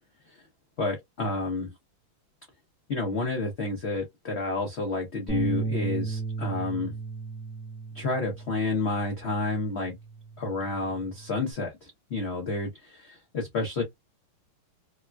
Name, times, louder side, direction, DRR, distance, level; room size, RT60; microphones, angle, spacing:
voice 1, 0.8-1.7 2.9-6.9 7.9-9.9 10.4-13.8, left 3 dB, 75° left, 0.6 m, -30 dB
sound 1, 5.3-11.5, right 4 dB, ahead, 0.7 m, -35 dB
3.5 x 2.3 x 2.2 m
omnidirectional pair, 2.2 m